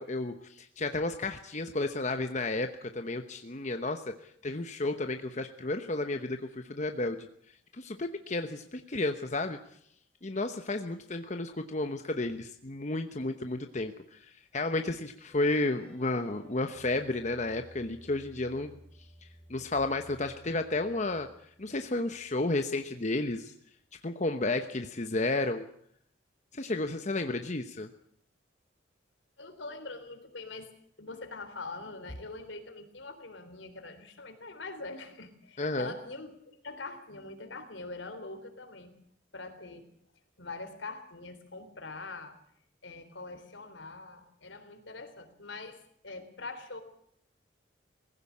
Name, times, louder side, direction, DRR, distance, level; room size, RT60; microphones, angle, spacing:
voice 1, 0.0-4.2 4.4-7.3 7.7-9.6 10.2-18.7 19.2-21.3 21.6-23.5 24.0-25.6 26.5-27.9 35.6-35.9, left 2 dB, 40° left, 7 dB, 1.0 m, -32 dB
sound 1, 15.3-22.4, equal, 5° left, 5.6 m, -56 dB
voice 2, 29.4-30.7 31.0-38.9 39.3-39.9 40.4-42.4 42.8-46.8, left 3 dB, 80° left, 8 dB, 3.7 m, -43 dB
20.0 x 16.5 x 8.6 m, 0.68 s
head